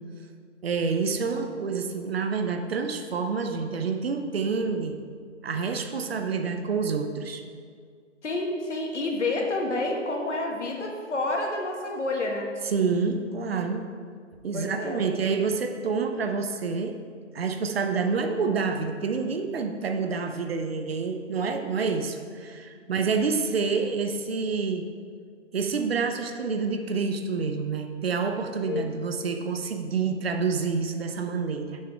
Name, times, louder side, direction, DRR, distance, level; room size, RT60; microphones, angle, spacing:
voice 1, 0.6-5.0 5.4-7.4 12.6-13.9 14.4-17.0 17.3-24.9 25.5-31.8, right 5 dB, 55° right, 7 dB, 0.7 m, -28 dB
voice 2, 8.2-12.5 14.5-15.0 28.7-28.9 29.1-29.2, left 2 dB, 70° left, 1 dB, 1.6 m, -29 dB
6.7 x 6.4 x 4.5 m, 2.1 s
figure-of-eight pair, 145°, 37 cm